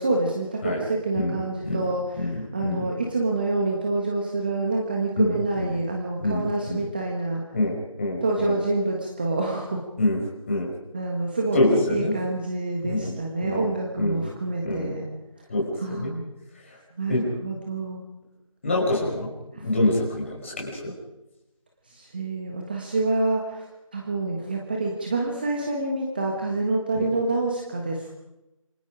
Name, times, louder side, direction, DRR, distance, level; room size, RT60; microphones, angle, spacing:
voice 1, 0.0-7.4 8.2-9.9 10.9-15.1 15.8-16.3 17.0-18.0 19.5-19.7 21.9-23.6 23.9-28.1, right 2 dB, 15° right, 0 dB, 1.4 m, -27 dB
voice 2, 2.1-2.9 5.2-5.7 6.2-6.8 7.5-8.6 10.0-10.2 10.5-10.7 11.5-12.1 12.8-13.1 13.4-13.7 14.0-14.2 14.6-14.9 15.5-16.1 17.1-17.2 18.6-19.3 19.6-20.9 26.9-27.1, left 1 dB, 20° left, -2 dB, 5.5 m, -26 dB
28.0 x 24.5 x 5.1 m, 0.96 s
figure-of-eight pair, 170°, 18 cm